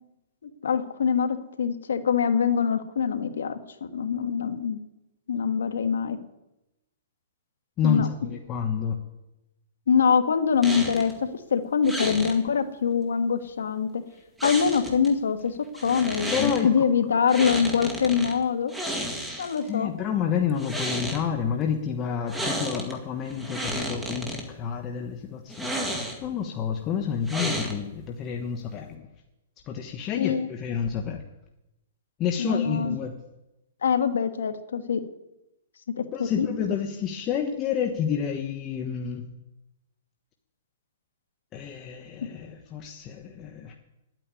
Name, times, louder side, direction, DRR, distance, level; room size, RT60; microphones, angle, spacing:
voice 1, 0.4-4.8 5.3-6.2 7.8-8.1 9.9-14.0 14.4-18.7 19.4-19.9 30.2-30.4 32.4-33.0 33.8-35.0 36.0-36.5, left 6 dB, 90° left, 8 dB, 1.5 m, -24 dB
voice 2, 7.8-9.0 16.3-16.8 19.7-29.1 29.7-31.2 32.2-33.2 36.1-39.3 41.5-43.7, left 7 dB, 25° left, 3 dB, 1.1 m, -29 dB
sound 1, 10.6-11.1 11.8-12.4 14.4-15.1 15.7-16.6 17.3-18.3 18.7-19.7 20.5-21.2 22.3-22.9 23.3-24.4 25.5-26.3 27.3-28.0, right 1 dB, 5° right, 2.0 m, -32 dB
11.0 x 9.1 x 9.7 m, 0.93 s
hypercardioid pair, 150°, 0 cm